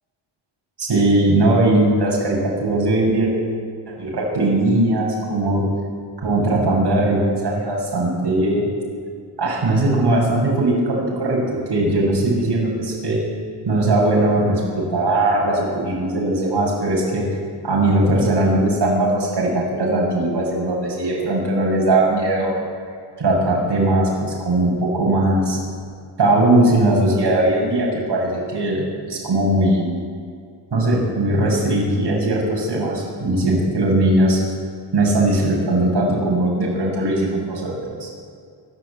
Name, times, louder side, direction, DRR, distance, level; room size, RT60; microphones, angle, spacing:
voice 1, 0.8-3.3 3.9-5.6 6.2-8.7 9.4-11.4 11.7-13.2 13.6-17.2 17.6-22.5 23.2-25.6 26.2-29.8 30.7-34.4 34.9-38.1, right 1 dB, 55° right, -3 dB, 7.3 m, -19 dB
25.5 x 12.0 x 8.7 m, 2.2 s
wide cardioid pair, 170°, 48 cm